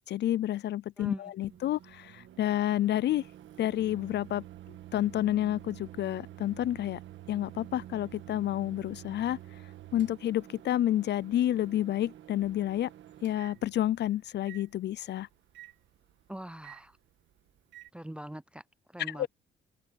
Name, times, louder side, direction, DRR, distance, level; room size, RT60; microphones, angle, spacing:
voice 1, 0.1-3.3 3.6-4.5 4.9-7.0 7.3-9.4 9.9-12.9 13.2-15.3 19.0-19.3, left 12 dB, 60° left, 0.5 m, -29 dB
Microwave oven, 1.4-17.9, right 13 dB, 70° right, 1.6 m, -49 dB
voice 2, 16.3-16.9 17.9-18.6 18.9-19.3, right 1 dB, 5° right, 0.5 m, -41 dB
cardioid pair, 90°, 20 cm